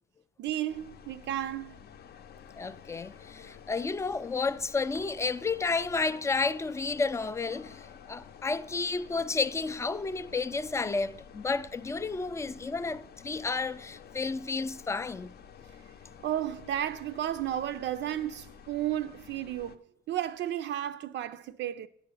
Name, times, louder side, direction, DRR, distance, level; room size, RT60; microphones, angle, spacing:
voice 1, 0.4-1.7 16.2-19.8 20.1-21.9, right 11 dB, 60° right, 0.4 m, -33 dB
sound 1, 0.7-19.8, left 7 dB, 50° left, 0.6 m, -51 dB
voice 2, 2.6-15.3, left 4 dB, 15° left, 0.3 m, -31 dB
8.5 x 5.7 x 6.8 m
cardioid pair, 130°, 21 cm